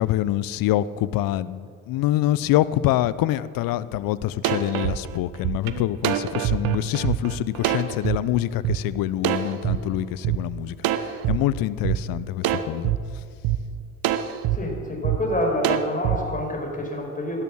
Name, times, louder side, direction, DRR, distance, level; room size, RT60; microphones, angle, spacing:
voice 1, 0.0-12.9, left 14 dB, 50° left, 17 dB, 0.7 m, -25 dB
sound 1, 3.9-4.0 4.4-8.2 8.6-8.8 9.2-10.4 10.8-11.4 11.8-12.0 12.4-13.0 13.4-13.6 14.0-14.6 15.0-15.2 15.6-16.2, right 12 dB, 55° right, 1.0 m, -24 dB
voice 2, 14.5-17.4, left 1 dB, 20° left, 1 dB, 5.3 m, -27 dB
17.5 x 12.5 x 6.4 m, 2.2 s
hypercardioid pair, 60°, 43 cm